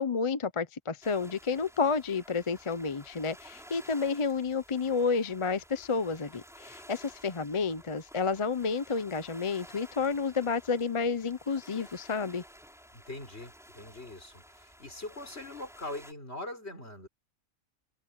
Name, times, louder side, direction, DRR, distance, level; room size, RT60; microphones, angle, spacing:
voice 1, 0.0-12.4, left 5 dB, 30° left, 0.6 m, -30 dB
sound 1, 1.0-16.1, equal, ahead, 5.3 m, -53 dB
voice 2, 12.9-17.1, left 2 dB, 55° left, 6.0 m, -42 dB
omnidirectional pair, 1.3 m